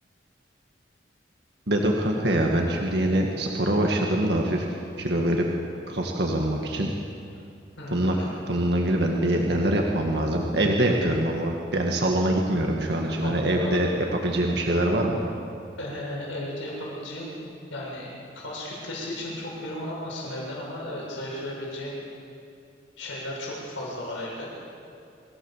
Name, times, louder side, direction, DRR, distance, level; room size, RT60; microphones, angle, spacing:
voice 1, 1.7-4.7 5.0-5.4 5.9-6.9 7.9-8.2 8.5-15.2, right 1 dB, 60° right, 0 dB, 1.8 m, -24 dB
voice 2, 7.8-8.3 13.0-13.8 15.8-17.4 17.7-18.1 18.3-22.0 23.0-24.5, left 1 dB, 90° left, -4 dB, 7.2 m, -35 dB
25.0 x 16.0 x 7.3 m, 2.6 s
head